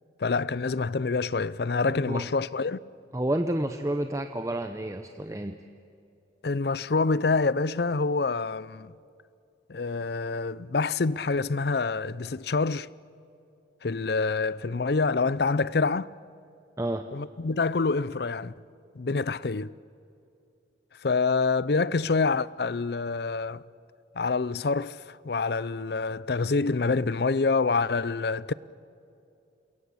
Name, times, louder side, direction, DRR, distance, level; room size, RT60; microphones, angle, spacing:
voice 1, 0.2-2.8 6.4-8.9 9.7-12.9 13.8-16.1 17.1-18.5 18.9-19.7 21.0-23.6 24.2-28.5, left 4 dB, 60° left, 0.5 m, -26 dB
voice 2, 1.9-2.3 3.1-5.6 16.8-17.1, right 1 dB, 15° right, 0.7 m, -30 dB
28.0 x 21.5 x 8.5 m
head